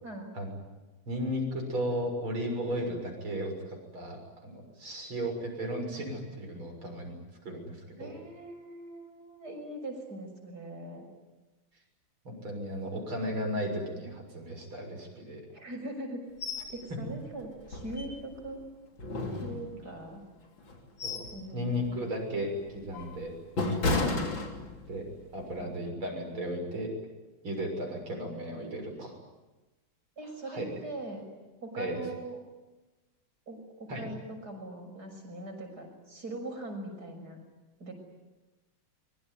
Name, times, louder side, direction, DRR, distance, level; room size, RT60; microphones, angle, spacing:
voice 1, 1.1-8.2 12.2-15.5 21.0-21.2 21.5-23.3 24.9-25.1 25.3-27.0 27.4-29.1 30.5-30.8 31.8-32.0 33.9-34.0, equal, 80° right, 2 dB, 7.5 m, -35 dB
voice 2, 8.0-11.0 15.5-16.2 16.7-18.6 19.4-20.2 21.3-22.1 25.6-25.9 30.2-31.2 31.6-32.4 33.5-37.4 37.8-37.9, right 2 dB, 50° right, 4 dB, 6.8 m, -41 dB
sound 1, 16.4-16.7 17.1-17.2 17.7-18.5 19.0-20.0 20.6-21.4 21.8-22.0 22.6-25.0 25.4-25.6, left 2 dB, 65° left, 4.0 m, -33 dB
25.0 x 23.0 x 9.7 m, 1.1 s
omnidirectional pair, 2.2 m